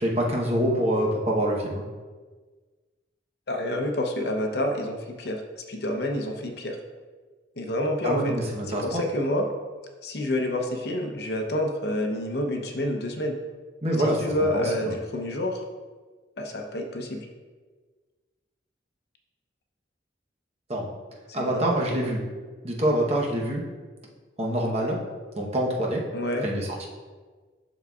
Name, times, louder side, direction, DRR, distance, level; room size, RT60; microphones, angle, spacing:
voice 1, 0.0-1.8 8.0-9.0 13.8-14.7 20.7-20.9 21.3-22.2 22.6-23.6 24.4-25.0 25.4-26.0 26.4-26.9, right 1 dB, 35° right, -2 dB, 0.9 m, -25 dB
voice 2, 3.5-5.4 5.7-6.8 7.6-8.3 8.7-9.5 10.0-13.4 14.2-15.6 16.4-17.2 21.4-22.1 26.1-26.4, left 1 dB, 60° left, 3 dB, 0.7 m, -28 dB
11.5 x 3.9 x 2.4 m, 1.4 s
head